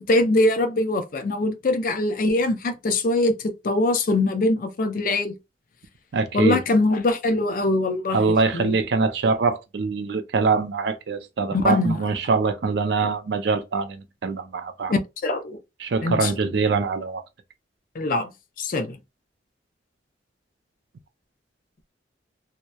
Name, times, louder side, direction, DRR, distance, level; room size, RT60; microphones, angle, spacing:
voice 1, 0.0-5.3 6.3-8.8 11.5-12.0 14.9-15.6 16.0-16.3 18.0-18.3 18.6-19.0, left 2 dB, 45° left, 0.4 m, -23 dB
voice 2, 6.1-6.6 8.1-15.0 15.8-17.2, right 4 dB, 65° right, 0.4 m, -23 dB
2.7 x 2.0 x 2.3 m
head